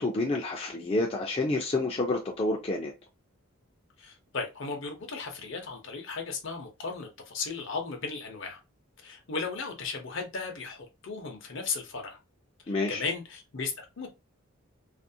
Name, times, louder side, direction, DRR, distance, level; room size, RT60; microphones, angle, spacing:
voice 1, 0.0-2.9 12.7-13.0, left 2 dB, 25° left, 0.4 m, -29 dB
voice 2, 4.0-8.6 9.0-12.2 12.7-14.1, left 4 dB, 60° left, 0.7 m, -36 dB
2.5 x 2.1 x 2.6 m
head